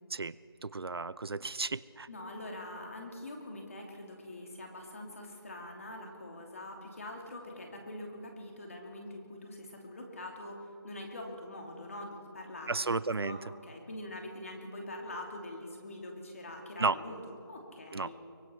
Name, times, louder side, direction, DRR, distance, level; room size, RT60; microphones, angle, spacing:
voice 1, 0.6-2.1 12.7-13.4 16.8-17.0 17.9-18.1, right 3 dB, 70° right, 18 dB, 0.6 m, -32 dB
voice 2, 2.1-18.2, left 1 dB, 35° left, 1 dB, 2.9 m, -44 dB
24.5 x 23.0 x 4.5 m, 2.5 s
figure-of-eight pair, 175°, 13 cm